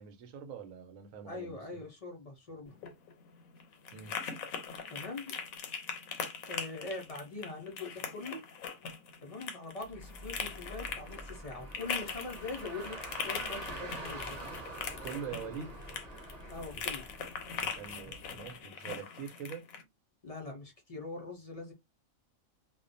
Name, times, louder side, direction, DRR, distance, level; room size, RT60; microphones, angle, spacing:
voice 1, 0.0-1.8 3.9-4.1 15.0-15.7 16.7-17.0 17.5-19.6, right 7 dB, 80° right, 1.0 m, -44 dB
voice 2, 1.3-2.7 4.9-5.3 6.5-8.4 9.2-14.4 16.4-17.0 20.2-21.7, left 3 dB, 60° left, 0.3 m, -42 dB
sound 1, 2.7-19.8, left 6 dB, 85° left, 1.0 m, -41 dB
Car, 9.9-18.4, right 1 dB, 35° right, 0.8 m, -46 dB
2.4 x 2.1 x 2.5 m
omnidirectional pair, 1.4 m